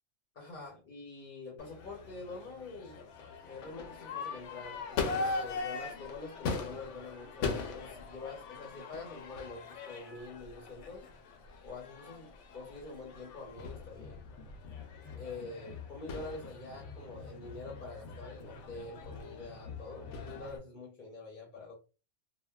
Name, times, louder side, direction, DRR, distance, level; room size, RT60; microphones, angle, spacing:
voice 1, 0.3-3.1 3.4-11.1 11.6-14.2 15.1-21.7, left 3 dB, 50° left, -1 dB, 0.7 m, -46 dB
Crowd / Fireworks, 1.6-20.6, left 4 dB, 80° left, 0.9 m, -41 dB
2.9 x 2.2 x 2.2 m, 0.33 s
omnidirectional pair, 1.2 m